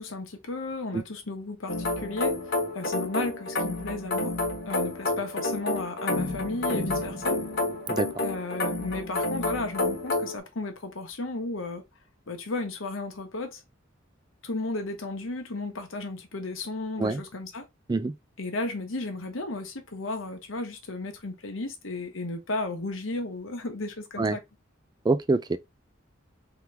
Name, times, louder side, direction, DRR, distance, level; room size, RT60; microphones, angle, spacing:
voice 1, 0.0-2.3 2.7-4.3 4.7-7.4 8.2-11.8 12.3-13.6 14.4-17.7 18.4-24.4, left 2 dB, 85° left, 1.1 m, -34 dB
sound 1, 1.7-10.4, left 2 dB, 60° left, 1.2 m, -29 dB
voice 2, 25.0-25.6, right 3 dB, 20° right, 0.3 m, -25 dB
3.5 x 3.0 x 3.4 m
head